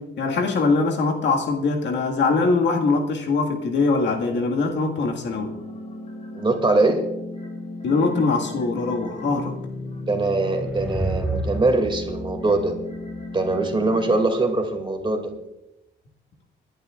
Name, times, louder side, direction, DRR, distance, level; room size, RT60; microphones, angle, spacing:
voice 1, 0.0-5.5 7.8-9.6, left 3 dB, 65° left, 2 dB, 1.8 m, -22 dB
sound 1, 5.3-14.2, left 2 dB, 35° left, 2.5 m, -35 dB
voice 2, 6.3-7.1 10.1-12.7 13.3-15.3, right 2 dB, 25° right, 5 dB, 2.4 m, -22 dB
sound 2, 10.0-13.5, right 2 dB, 10° right, 1.2 m, -31 dB
26.5 x 11.0 x 2.4 m, 0.89 s
cardioid pair, 90°, 20 cm